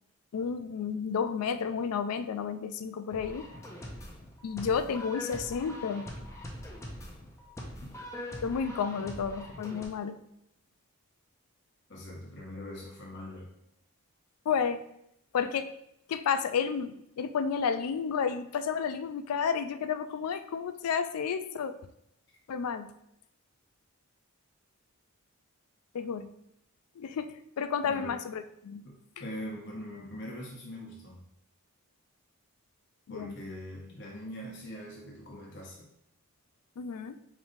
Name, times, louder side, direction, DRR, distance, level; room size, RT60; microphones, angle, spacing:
voice 1, 0.3-3.5 4.4-6.1 8.4-10.2 14.5-14.8 15.3-15.7 16.1-21.8 22.5-22.9 25.9-26.3 27.0-28.9 33.1-33.4 36.8-37.2, left 6 dB, 80° left, 10 dB, 0.3 m, -31 dB
sound 1, 3.1-9.9, left 1 dB, 15° left, 0.4 m, -43 dB
voice 2, 11.9-13.5 27.8-28.2 28.8-31.2 33.1-35.9, left 1 dB, 50° left, -2 dB, 0.8 m, -42 dB
5.0 x 3.1 x 2.6 m, 0.77 s
head